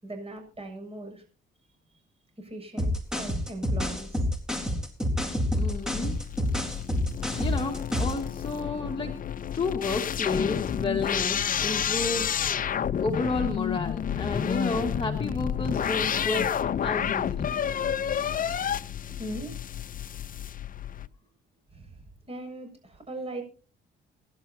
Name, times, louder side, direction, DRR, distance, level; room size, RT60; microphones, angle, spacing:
voice 1, 0.0-1.2 1.9-2.0 2.4-4.3 19.1-19.6 21.7-23.4, right 1 dB, 30° right, 7.1 m, -39 dB
sound 1, 2.8-8.3, left 1 dB, 5° right, 3.8 m, -28 dB
sound 2, 5.5-21.1, left 8 dB, 45° left, 0.7 m, -30 dB
voice 2, 5.5-6.2 7.4-9.1 9.5-12.4 13.0-16.5 16.8-17.6, left 3 dB, 25° left, 2.2 m, -31 dB
25.0 x 11.5 x 2.8 m
cardioid pair, 90°, 20 cm